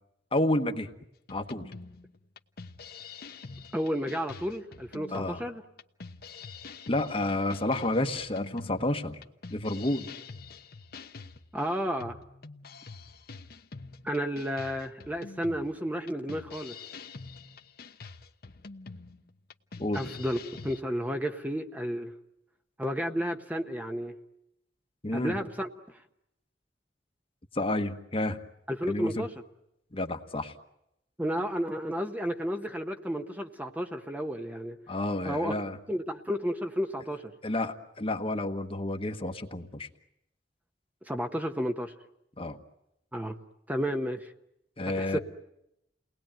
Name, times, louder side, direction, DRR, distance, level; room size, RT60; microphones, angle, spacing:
voice 1, 0.3-0.9 1.3-1.7 5.1-5.4 6.9-9.2 9.5-10.1 19.8-20.1 25.0-25.4 27.5-28.4 28.9-29.2 29.9-30.5 34.9-35.8 37.4-39.9 42.4-42.6 44.8-45.2, left 1 dB, 35° left, 7 dB, 1.3 m, -30 dB
sound 1, 1.3-20.8, left 4 dB, 60° left, 1.0 m, -46 dB
voice 2, 3.7-5.6 11.5-12.2 14.0-16.7 19.9-20.4 20.6-22.1 22.8-24.1 25.1-25.7 28.7-29.3 31.2-34.8 35.2-35.5 35.9-37.3 41.0-41.9 43.1-43.4 43.7-44.3 44.9-45.2, equal, 10° right, 5 dB, 1.0 m, -32 dB
29.5 x 19.5 x 9.0 m, 0.83 s
head